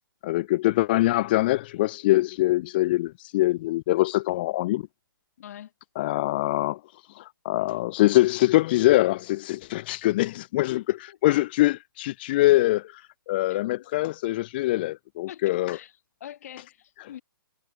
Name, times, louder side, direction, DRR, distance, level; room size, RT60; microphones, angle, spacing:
voice 1, 0.2-4.9 6.0-6.8 7.1-10.8 11.2-15.8, left 17 dB, 25° left, 0.4 m, -23 dB
voice 2, 5.4-5.7 10.3-11.2 13.5-13.6 15.3-15.9 16.2-17.2, left 11 dB, 45° left, 5.8 m, -43 dB
figure-of-eight pair, 135°, 12 cm